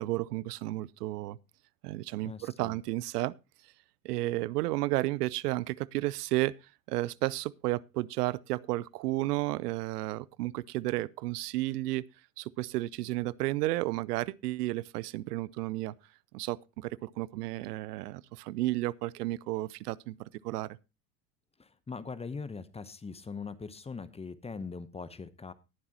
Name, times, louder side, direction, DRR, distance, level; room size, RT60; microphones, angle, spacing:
voice 1, 0.0-1.4 1.8-3.3 4.0-6.5 6.9-12.0 12.4-15.9 16.3-20.2 20.4-20.8, right 18 dB, 75° right, 0.6 m, -32 dB
voice 2, 2.2-2.8 21.6-25.5, left 4 dB, 15° left, 0.8 m, -41 dB
19.5 x 7.2 x 2.8 m
hypercardioid pair, 80°, 47 cm